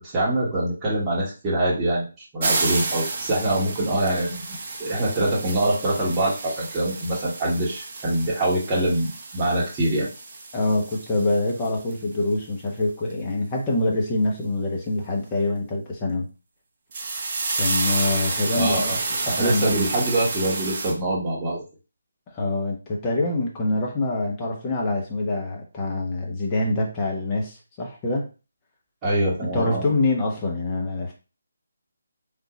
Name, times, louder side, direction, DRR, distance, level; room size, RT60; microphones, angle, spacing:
voice 1, 0.0-4.4 4.8-10.1 18.5-19.0 19.2-21.6 29.0-29.8, right 1 dB, 20° right, -6 dB, 1.1 m, -24 dB
sound 1, 2.4-11.9 12.3-12.4 16.9-20.9, right 3 dB, 40° right, 0.8 m, -30 dB
voice 2, 10.5-16.3 17.6-19.0 19.3-19.7 22.3-28.3 29.5-31.1, left 2 dB, 20° left, -1 dB, 0.9 m, -25 dB
3.6 x 2.6 x 2.9 m, 0.32 s
figure-of-eight pair, 155°, 0 cm